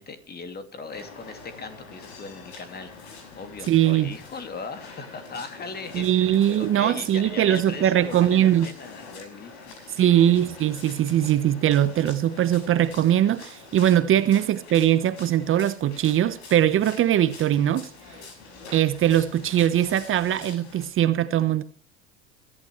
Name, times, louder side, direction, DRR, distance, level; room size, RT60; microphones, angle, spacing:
voice 1, 0.0-10.4, left 4 dB, 30° left, 2.7 m, -39 dB
sound 1, 0.9-20.9, left 3 dB, 55° left, 6.5 m, -45 dB
voice 2, 3.7-4.1 5.9-8.7 10.0-17.9 18.7-21.6, right 11 dB, 40° right, 1.1 m, -21 dB
22.5 x 11.5 x 3.2 m
hypercardioid pair, 80°, 33 cm